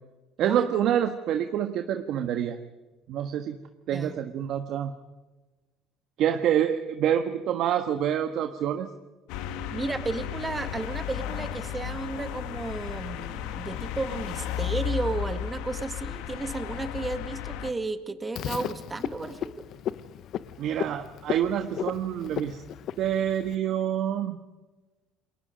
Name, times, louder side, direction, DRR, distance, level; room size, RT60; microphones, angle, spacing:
voice 1, 0.4-2.6 3.1-3.6 3.9-4.9 6.2-8.9 20.6-22.6 23.0-24.4, right 10 dB, 65° right, 6 dB, 1.3 m, -27 dB
sound 1, 9.3-17.7, left 10 dB, 85° left, 1.5 m, -34 dB
voice 2, 9.7-19.7, right 3 dB, 20° right, 8 dB, 1.9 m, -33 dB
Frog, 18.4-23.6, left 10 dB, 60° left, 0.8 m, -35 dB
28.5 x 22.0 x 5.2 m, 1.2 s
cardioid pair, 105°, 0 cm